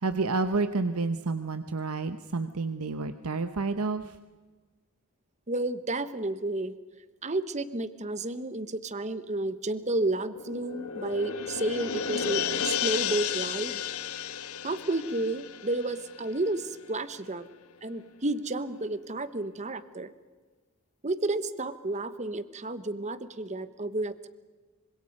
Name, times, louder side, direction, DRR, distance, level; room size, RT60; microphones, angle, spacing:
voice 1, 0.0-4.2, right 3 dB, 80° right, 10 dB, 1.0 m, -29 dB
voice 2, 5.5-6.8 7.2-13.8 14.6-17.5 17.8-20.1 21.0-24.3, right 2 dB, 30° right, 13 dB, 1.1 m, -31 dB
sound 1, 9.8-16.8 17.1-17.2, left 8 dB, 85° left, 1.3 m, -33 dB
26.5 x 25.5 x 5.4 m, 1.4 s
head